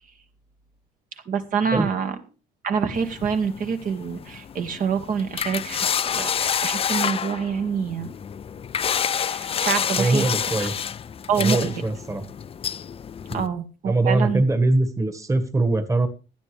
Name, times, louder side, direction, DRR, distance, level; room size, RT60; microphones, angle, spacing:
voice 1, 1.3-2.2 2.6-5.9 6.1-8.1 9.2-10.3 10.6-10.7 11.3-11.8 13.3-14.4, right 6 dB, 55° right, 6 dB, 1.9 m, -26 dB
sound 1, 3.0-13.5, left 8 dB, 35° left, 0.5 m, -28 dB
voice 2, 10.0-10.7 11.4-12.2 13.3-13.4 13.8-16.1, right 2 dB, 20° right, 8 dB, 1.8 m, -22 dB
16.5 x 10.5 x 3.4 m, 0.33 s
cardioid pair, 110°, 17 cm